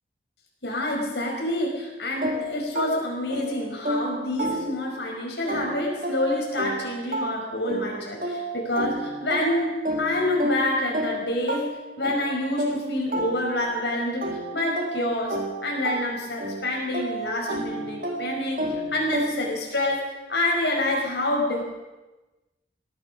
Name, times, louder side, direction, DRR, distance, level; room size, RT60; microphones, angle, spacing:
voice 1, 0.6-11.7 12.0-21.6, left 1 dB, 80° left, -1 dB, 5.5 m, -27 dB
sound 1, 2.2-5.1 5.5-13.8 14.2-19.6, right 1 dB, 50° right, 2.2 m, -31 dB
18.5 x 12.5 x 6.3 m, 1.1 s
head